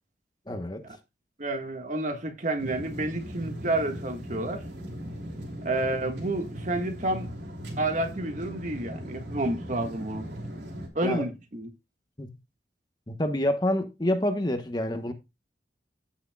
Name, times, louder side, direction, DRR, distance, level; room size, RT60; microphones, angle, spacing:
voice 1, 0.5-0.8 11.0-11.3 12.2-12.4 13.1-15.1, left 1 dB, 25° left, 1.1 m, -27 dB
voice 2, 1.4-4.6 5.6-7.3 7.8-10.3 10.9-11.7, right 2 dB, 45° right, 1.6 m, -30 dB
sound 1, 2.6-10.9, equal, 75° right, 3.1 m, -38 dB
15.5 x 6.3 x 2.3 m
head